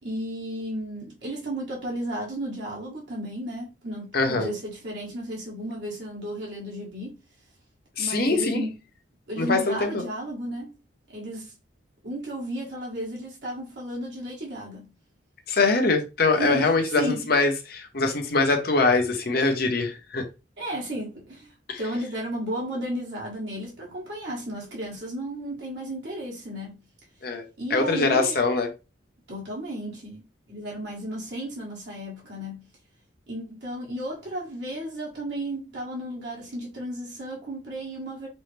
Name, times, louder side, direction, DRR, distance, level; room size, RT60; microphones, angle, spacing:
voice 1, 0.0-7.1 8.0-8.7 9.3-10.7 11.1-11.5 12.0-14.9 16.3-17.3 20.6-26.8 27.6-28.3 29.3-32.7 33.3-38.3, right 1 dB, 70° right, 1.6 m, -33 dB
voice 2, 4.1-4.5 8.0-8.6 9.4-10.0 15.5-20.3 21.7-21.8 27.2-27.4 27.7-28.7, left 3 dB, 55° left, 0.9 m, -23 dB
5.4 x 2.1 x 3.3 m
head